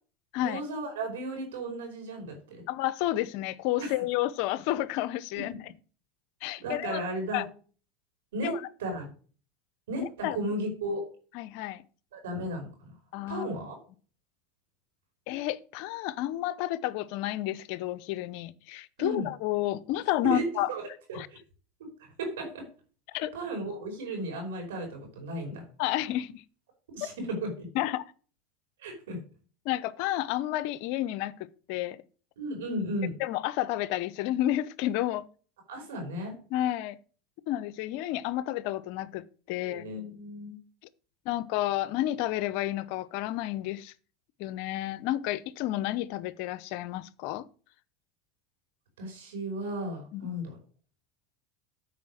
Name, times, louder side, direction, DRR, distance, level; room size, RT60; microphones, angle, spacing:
voice 1, 0.4-2.6 3.8-4.0 5.4-5.5 6.6-7.4 8.3-9.1 9.9-11.0 12.1-12.9 13.3-13.8 19.0-19.3 20.2-21.4 22.2-22.6 23.3-25.6 26.9-27.7 28.8-29.2 32.4-33.1 35.7-36.3 39.6-40.6 49.0-50.6, right 1 dB, 85° right, 5.0 m, -34 dB
voice 2, 2.7-5.5 6.4-7.0 7.3-7.4 8.4-8.6 10.0-10.4 11.3-11.8 13.1-13.5 15.3-20.7 21.1-21.3 23.1-23.3 25.8-26.4 27.0-27.1 27.7-28.0 29.6-31.3 31.7-32.0 33.2-35.2 36.5-37.0 37.5-39.9 41.3-43.9 44.4-47.5 50.1-50.3, left 14 dB, 65° left, 0.6 m, -31 dB
9.3 x 4.8 x 6.3 m
supercardioid pair, 105°, 0 cm